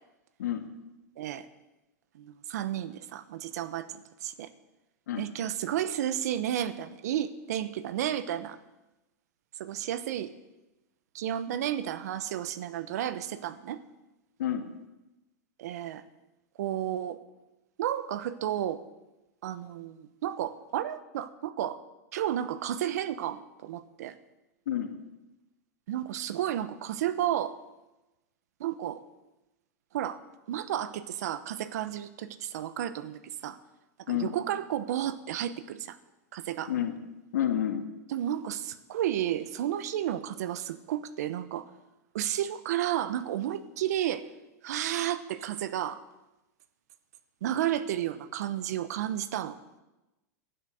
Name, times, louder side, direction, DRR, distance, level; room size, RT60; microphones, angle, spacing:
voice 1, 2.2-4.5 5.2-8.6 9.6-10.3 11.1-13.8 15.6-16.0 16.6-17.2 17.8-18.8 19.4-21.8 22.1-24.1 25.9-27.6 28.6-29.0 29.9-30.2 30.5-33.6 34.1-36.0 36.3-36.7 38.1-41.7 42.1-44.2 44.6-46.0 47.4-49.6, right 11 dB, 75° right, 14 dB, 1.0 m, -32 dB
voice 2, 37.3-37.8, left 10 dB, 85° left, 6 dB, 1.8 m, -29 dB
12.0 x 10.0 x 6.4 m, 1.0 s
supercardioid pair, 135°, 9 cm